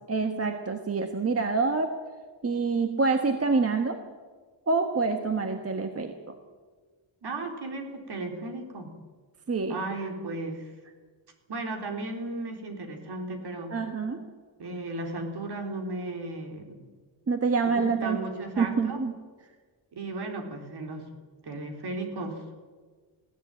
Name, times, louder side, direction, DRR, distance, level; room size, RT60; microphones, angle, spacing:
voice 1, 0.1-1.9 2.4-4.0 4.7-6.3 9.5-9.8 13.7-14.3 17.3-18.2 18.6-19.1, right 4 dB, 30° right, 6 dB, 1.4 m, -26 dB
voice 2, 7.2-8.9 9.7-10.7 11.5-13.8 14.6-16.8 17.6-19.0 19.9-21.1 21.4-22.4, right 2 dB, 55° right, 4 dB, 4.0 m, -35 dB
21.0 x 16.5 x 9.2 m, 1.4 s
wide cardioid pair, 140°, 47 cm